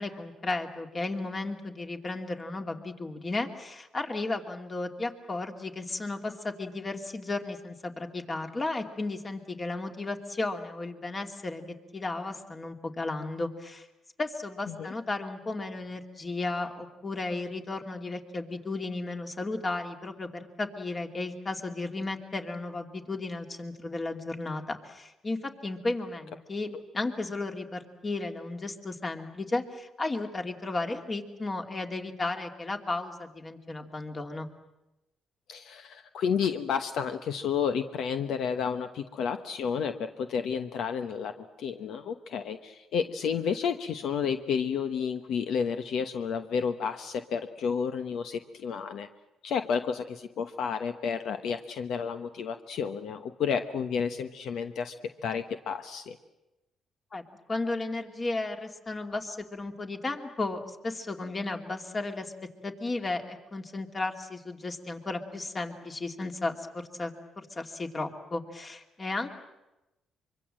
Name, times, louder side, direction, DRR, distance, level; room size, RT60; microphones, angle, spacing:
voice 1, 0.0-11.6 11.9-13.9 14.2-26.7 26.9-34.5 57.1-57.2 57.5-62.3 62.6-69.3, left 2 dB, 30° left, 5 dB, 2.6 m, -34 dB
voice 2, 35.5-49.1 49.4-54.9 55.2-56.2, left 6 dB, 75° left, 8 dB, 1.1 m, -31 dB
24.5 x 24.0 x 7.7 m, 0.97 s
cardioid pair, 90°, 0 cm